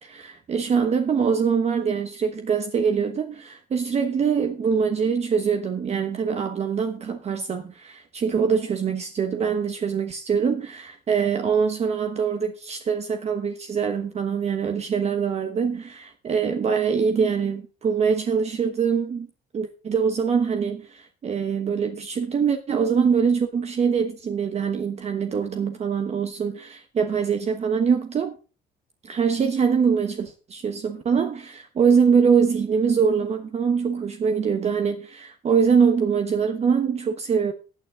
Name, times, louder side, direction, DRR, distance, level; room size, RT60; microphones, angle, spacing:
voice 1, 0.0-19.3 19.5-28.4 29.0-37.5, right 6 dB, 40° right, 1.2 m, -23 dB
16.0 x 8.9 x 3.7 m
cardioid pair, 110°, 17 cm